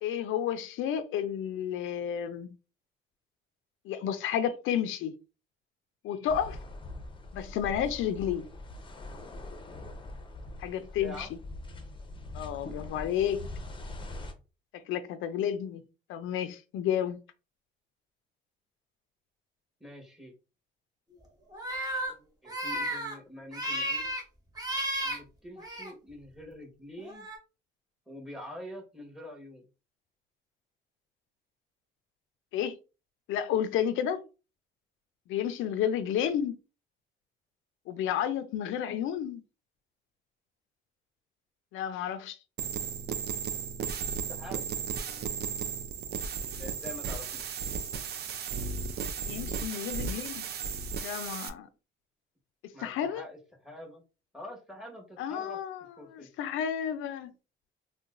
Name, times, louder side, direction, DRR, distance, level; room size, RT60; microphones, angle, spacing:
voice 1, 0.0-2.5 3.8-5.2 6.0-6.6 7.3-8.5 10.6-11.3 12.3-13.4 14.7-15.8 16.1-17.2 32.5-32.8 33.3-34.2 35.3-36.6 37.9-39.4 41.7-42.4 49.3-50.5 51.0-51.7 52.8-53.2 55.2-55.8 56.1-57.3, left 9 dB, 85° left, 0.4 m, -31 dB
sound 1, 6.3-14.3, left 2 dB, 25° left, 0.6 m, -42 dB
voice 2, 10.8-11.3 19.8-20.3 22.4-24.1 25.0-27.3 28.1-29.7 44.3-44.7 45.6-45.7 46.6-47.4 52.7-54.0 54.3-55.6 56.0-56.3, left 1 dB, ahead, 1.3 m, -45 dB
sound 2, 21.5-22.1 22.5-23.2 23.5-24.2 24.6-25.2 25.6-25.9 27.0-27.4, right 1 dB, 20° right, 1.1 m, -33 dB
sound 3, 42.6-51.5, right 6 dB, 55° right, 0.4 m, -35 dB
3.9 x 2.2 x 2.4 m
cardioid pair, 90°, 20 cm